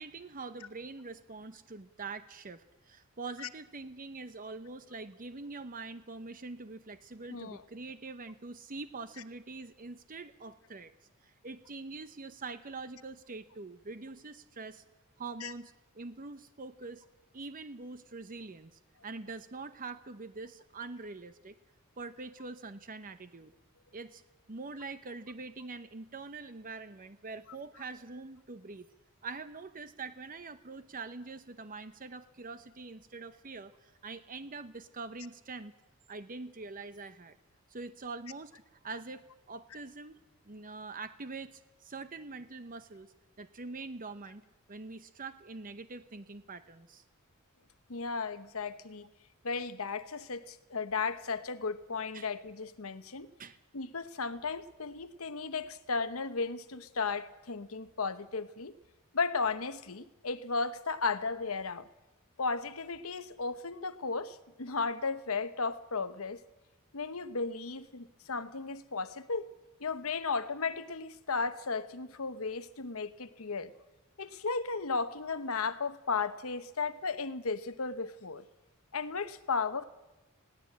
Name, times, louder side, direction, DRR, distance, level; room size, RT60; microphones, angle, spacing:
voice 1, 0.0-10.9 11.2-14.8 15.2-17.0 17.3-18.7 19.0-21.5 22.0-23.5 23.9-24.2 24.5-28.9 29.2-35.7 36.1-37.4 37.7-40.2 40.5-47.0 52.1-52.3 53.4-53.6, right 3 dB, 40° right, 0.9 m, -44 dB
voice 2, 7.3-7.6 15.4-15.5 47.9-49.1 49.4-53.3 53.7-58.7 59.1-61.9 62.4-66.4 66.9-69.5 69.8-73.7 74.2-78.4 78.9-79.8, left 4 dB, 70° left, 1.1 m, -35 dB
20.5 x 17.0 x 8.6 m
head